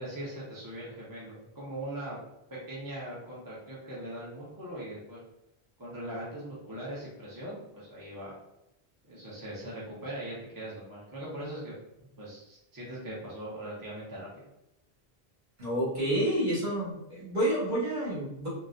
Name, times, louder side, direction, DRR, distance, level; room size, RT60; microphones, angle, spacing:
voice 1, 0.0-2.2 2.5-5.2 5.8-8.4 9.0-11.7 12.2-14.5, right 1 dB, 25° right, -6 dB, 0.7 m, -40 dB
voice 2, 15.6-18.5, right 1 dB, 50° right, -8 dB, 1.5 m, -29 dB
3.8 x 2.1 x 2.5 m, 0.84 s
omnidirectional pair, 1.0 m